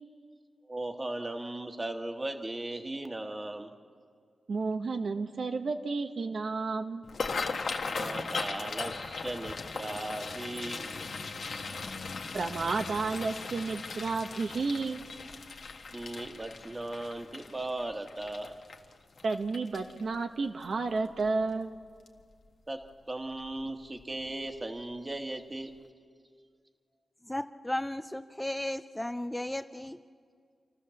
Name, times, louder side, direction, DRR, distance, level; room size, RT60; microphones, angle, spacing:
voice 1, 0.7-3.7 7.9-10.8 15.9-18.5 22.7-22.8 23.1-25.7, right 1 dB, 25° right, 5 dB, 1.5 m, -37 dB
voice 2, 4.5-7.0 12.3-15.0 19.2-21.7, right 4 dB, 65° right, 6 dB, 1.0 m, -31 dB
sound 1, 7.0-20.2 20.6-20.9 21.2-21.7 22.1-22.2 23.4-23.6 24.0-24.1 24.6-24.7, left 4 dB, 70° left, 1.4 m, -38 dB
voice 3, 27.2-30.0, left 1 dB, 10° left, 9 dB, 0.5 m, -35 dB
28.0 x 13.5 x 7.1 m, 2.1 s
wide cardioid pair, 90°, 0 cm